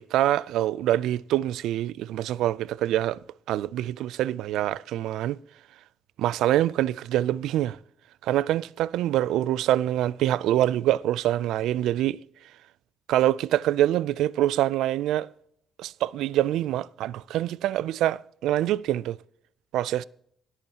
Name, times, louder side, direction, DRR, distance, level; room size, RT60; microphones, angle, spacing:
voice 1, 0.1-3.2 3.5-5.4 6.2-7.8 8.2-12.2 13.1-15.3 15.8-19.2 19.7-20.0, right 13 dB, 85° right, 0.3 m, -25 dB
17.5 x 8.6 x 2.9 m
cardioid pair, 90°, 0 cm